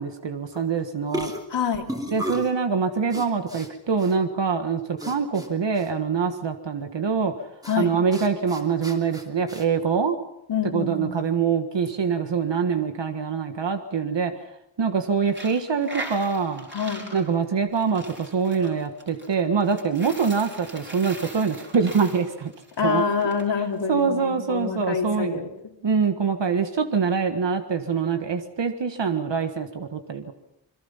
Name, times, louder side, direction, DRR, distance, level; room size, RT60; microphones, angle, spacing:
voice 1, 0.0-1.3 2.1-7.3 7.8-10.2 10.7-14.3 14.8-16.7 17.1-22.5 22.8-23.0 23.9-25.4 25.8-30.3, right 5 dB, 65° right, 7 dB, 1.6 m, -24 dB
sound 1, 0.5-0.7 1.1-2.6 3.1-3.7 4.0-4.1 5.0-5.5 5.7-5.9 7.6-7.8 8.1-9.6, equal, 10° right, 2.9 m, -34 dB
voice 2, 1.5-1.8 7.7-7.9 10.5-11.2 16.7-17.1 22.8-25.5, left 6 dB, 65° left, 4 dB, 3.0 m, -26 dB
Coin (dropping), 15.2-23.5, right 2 dB, 25° right, 4.4 m, -40 dB
27.0 x 22.0 x 5.7 m, 0.81 s
wide cardioid pair, 150°, 46 cm